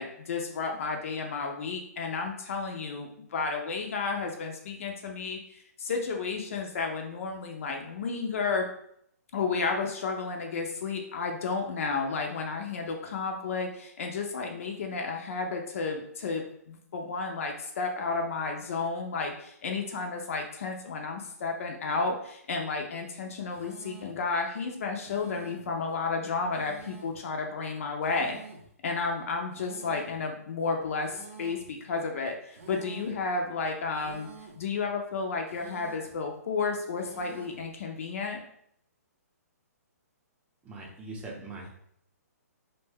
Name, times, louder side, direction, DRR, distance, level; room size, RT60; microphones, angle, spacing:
voice 1, 0.0-8.7 9.3-28.4 28.8-34.3 34.6-38.4, left 4 dB, 55° left, 2 dB, 0.5 m, -32 dB
sound 1, 23.5-24.2 25.0-25.7 26.5-27.2 28.0-28.7 29.5-30.2 31.0-31.7 32.5-33.2 34.0-34.7 35.5-36.2 37.0-37.7, right 4 dB, 55° right, 0.6 m, -48 dB
voice 2, 40.6-41.7, right 2 dB, 15° right, -2 dB, 0.6 m, -41 dB
2.6 x 2.1 x 3.3 m, 0.70 s
hypercardioid pair, 135°, 9 cm